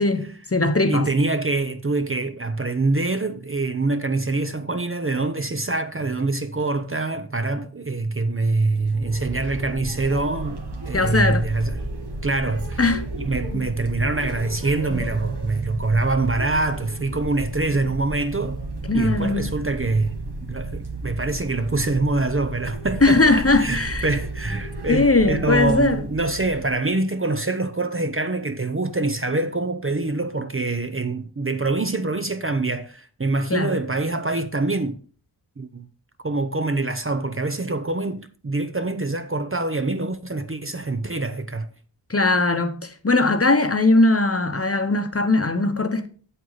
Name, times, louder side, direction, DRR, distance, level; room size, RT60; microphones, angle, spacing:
voice 1, 0.0-1.1 10.9-11.4 12.8-13.1 13.5-13.7 18.9-19.5 23.0-24.1 24.9-26.0 33.5-33.8 42.1-46.1, left 2 dB, 35° left, 1.0 m, -20 dB
voice 2, 0.9-10.6 10.9-11.8 12.2-12.8 13.1-18.6 18.9-20.2 20.5-35.0 35.6-35.9 36.2-41.7, right 2 dB, 30° right, 0.7 m, -25 dB
sound 1, 8.6-26.9, right 2 dB, 65° right, 1.8 m, -33 dB
7.9 x 7.7 x 4.0 m
wide cardioid pair, 65°, 42 cm